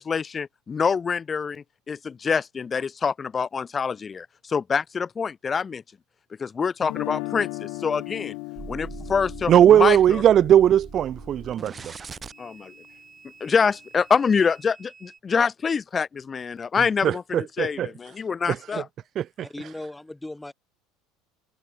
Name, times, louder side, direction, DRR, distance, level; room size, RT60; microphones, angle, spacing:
voice 1, 0.0-5.8 6.4-8.3 8.7-10.2 12.4-12.7 13.4-18.8, left 6 dB, 30° left, 1.2 m, -26 dB
Guitar, 6.8-12.8, left 32 dB, 70° left, 0.7 m, -37 dB
sound 1, 8.6-15.2, right 5 dB, 25° right, 2.0 m, -43 dB
voice 2, 9.5-11.9 17.0-17.9 18.5-18.6 19.4-19.5, right 10 dB, 45° right, 0.5 m, -18 dB
voice 3, 19.4-20.5, left 1 dB, 10° left, 4.6 m, -37 dB
hypercardioid pair, 80°, 0 cm